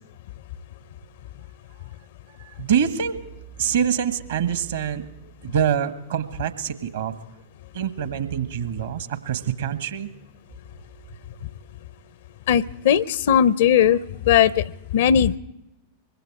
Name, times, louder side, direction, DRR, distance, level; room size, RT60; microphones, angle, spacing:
voice 1, 2.6-3.2 3.6-5.0 5.4-7.1 7.7-10.1, right 8 dB, 65° right, 11 dB, 1.5 m, -25 dB
voice 2, 12.5-14.0 14.3-14.6 14.9-15.4, left 9 dB, 55° left, 19 dB, 0.6 m, -18 dB
25.0 x 22.5 x 4.8 m, 0.88 s
figure-of-eight pair, 90°, 0 cm